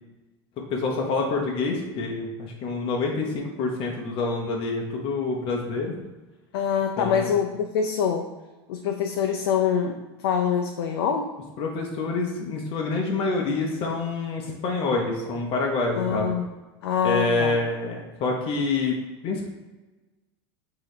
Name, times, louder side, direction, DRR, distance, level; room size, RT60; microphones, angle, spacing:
voice 1, 0.7-5.9 7.0-7.3 11.6-16.3 17.0-18.9 19.2-19.5, left 3 dB, 45° left, 0 dB, 0.7 m, -27 dB
voice 2, 6.5-8.3 8.7-11.4 15.9-16.5 16.8-17.6, left 7 dB, 75° left, 4 dB, 0.4 m, -25 dB
4.7 x 2.8 x 3.1 m, 1.2 s
hypercardioid pair, 110°, 13 cm